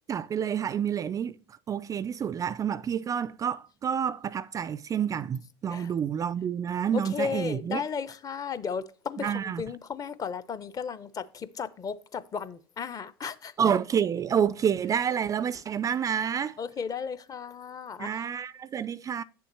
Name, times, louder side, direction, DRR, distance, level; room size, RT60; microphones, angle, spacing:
voice 1, 0.1-1.3 1.7-7.8 9.2-9.6 13.6-16.6 18.0-19.2, right 8 dB, 25° right, 0.4 m, -28 dB
voice 2, 6.9-13.5 14.4-14.5 16.6-18.1, left 6 dB, 30° left, 0.7 m, -35 dB
8.7 x 7.0 x 3.1 m
hypercardioid pair, 95°, 12 cm